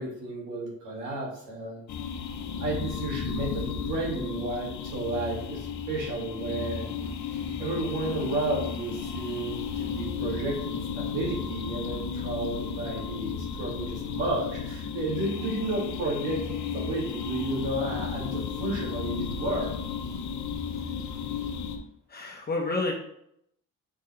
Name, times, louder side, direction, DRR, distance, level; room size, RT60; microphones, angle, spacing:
voice 1, 0.0-1.8 2.6-6.9 7.6-19.7, right 2 dB, 90° right, -2 dB, 2.1 m, -32 dB
sound 1, 1.9-21.8, left 6 dB, 70° left, 0.9 m, -34 dB
voice 2, 22.1-22.9, left 2 dB, 30° left, 0 dB, 1.1 m, -30 dB
7.1 x 4.3 x 3.2 m, 0.73 s
cardioid pair, 90°, 30 cm